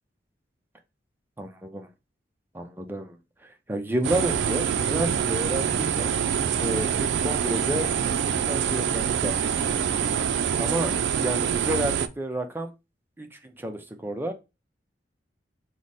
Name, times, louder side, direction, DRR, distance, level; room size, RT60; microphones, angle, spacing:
voice 1, 1.4-1.9 2.5-3.2 3.4-6.2 6.6-7.9 8.5-9.5 10.6-10.9 11.2-12.7 13.2-14.3, right 1 dB, 10° right, 5 dB, 0.5 m, -31 dB
sound 1, 4.0-12.1, right 8 dB, 65° right, 0.3 m, -25 dB
4.8 x 2.1 x 4.0 m, 0.26 s
head